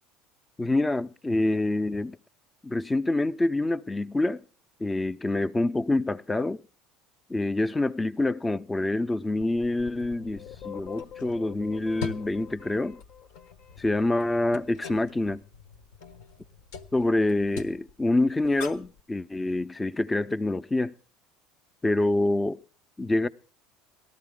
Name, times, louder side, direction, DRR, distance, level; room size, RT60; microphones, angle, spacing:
voice 1, 0.6-2.2 2.6-4.4 4.8-6.6 7.3-13.0 13.8-15.4 16.9-20.9 21.8-22.6 23.0-23.3, left 2 dB, 15° left, 0.6 m, -26 dB
sound 1, 9.4-14.3, left 9 dB, 60° left, 0.9 m, -45 dB
sound 2, 9.9-19.0, left 6 dB, 80° left, 1.2 m, -44 dB
18.0 x 14.0 x 3.7 m
supercardioid pair, 90°, 0 cm